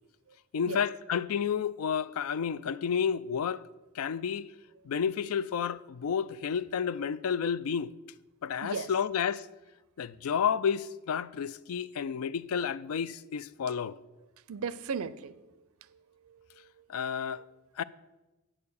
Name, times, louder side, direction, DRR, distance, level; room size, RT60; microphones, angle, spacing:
voice 1, 0.5-3.6 3.9-4.5 4.8-7.9 8.4-9.5 10.0-14.0 16.9-17.4 17.8-17.9, left 7 dB, 85° left, 0.4 m, -31 dB
voice 2, 14.5-16.9, right 5 dB, 85° right, 0.5 m, -38 dB
8.5 x 6.6 x 6.9 m
head